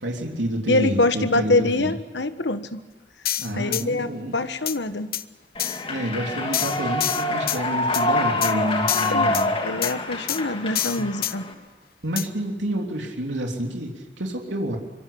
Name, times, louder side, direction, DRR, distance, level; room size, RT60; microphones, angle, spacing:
voice 1, 0.0-1.9 3.4-4.3 5.9-9.5 12.0-14.8, right 1 dB, 85° right, 1 dB, 3.4 m, -29 dB
voice 2, 0.7-2.8 3.5-5.1 9.1-11.5, left 2 dB, 70° left, 10 dB, 1.4 m, -24 dB
sound 1, 3.3-3.8 4.7-4.8 5.1-5.2 5.6-5.8 6.5-7.6 7.9-8.1 8.4-8.5 8.9-9.5 9.8-9.9 10.3-10.4 10.8-11.3 12.2-12.3, left 12 dB, 55° left, 0.9 m, -27 dB
Human voice / Clapping / Cheering, 5.5-11.5, left 2 dB, 30° left, 3.0 m, -26 dB
25.0 x 24.0 x 8.7 m, 1.1 s
head